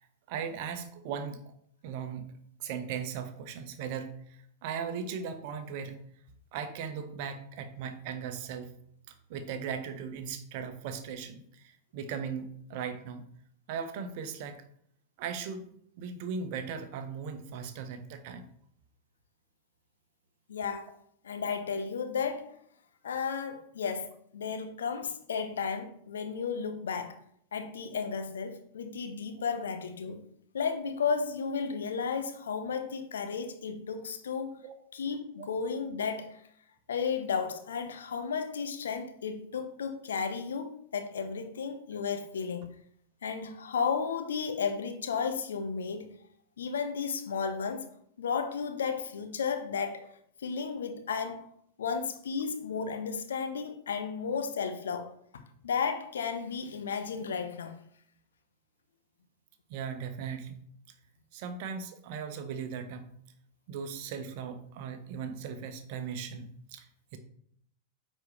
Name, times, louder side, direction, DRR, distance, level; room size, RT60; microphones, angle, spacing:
voice 1, 0.3-1.4 1.8-2.3 2.6-5.9 6.5-8.7 9.3-13.3 13.7-14.6 15.2-15.7 16.0-18.5 34.6-34.8 35.4-35.5 59.7-60.6 61.3-63.2 63.7-67.2, right 6 dB, 45° right, 1.0 m, -38 dB
voice 2, 20.5-21.0 21.2-22.6 23.0-27.2 27.5-30.2 30.5-34.6 34.9-36.4 36.9-42.7 43.2-46.1 46.6-47.9 48.2-50.1 50.4-51.5 51.8-57.8, left 6 dB, 65° left, 0.9 m, -33 dB
9.3 x 4.3 x 3.2 m
figure-of-eight pair, 90°, 0 cm